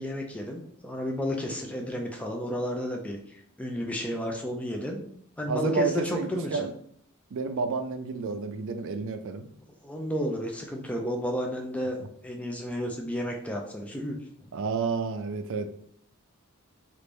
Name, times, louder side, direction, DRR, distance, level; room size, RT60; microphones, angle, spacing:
voice 1, 0.0-5.1 5.4-6.7 9.8-12.0 12.2-14.2, equal, 5° left, 1 dB, 0.4 m, -32 dB
voice 2, 5.5-6.7 7.3-9.5 14.5-15.7, right 4 dB, 65° right, 9 dB, 0.4 m, -30 dB
3.2 x 2.5 x 3.4 m, 0.63 s
head